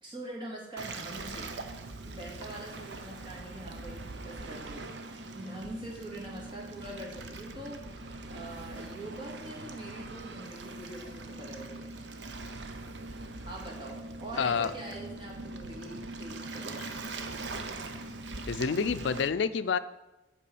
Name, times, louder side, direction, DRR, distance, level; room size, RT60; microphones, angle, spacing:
voice 1, 0.0-1.5 2.0-7.8 8.3-12.0 13.5-17.0, right 1 dB, 25° right, -2 dB, 2.1 m, -44 dB
Waves surf, 0.8-19.3, right 2 dB, 75° right, 0.8 m, -42 dB
voice 2, 14.4-14.7 16.8-16.9 18.5-19.8, left 6 dB, 80° left, 13 dB, 0.4 m, -28 dB
8.4 x 4.6 x 6.9 m, 1.0 s
head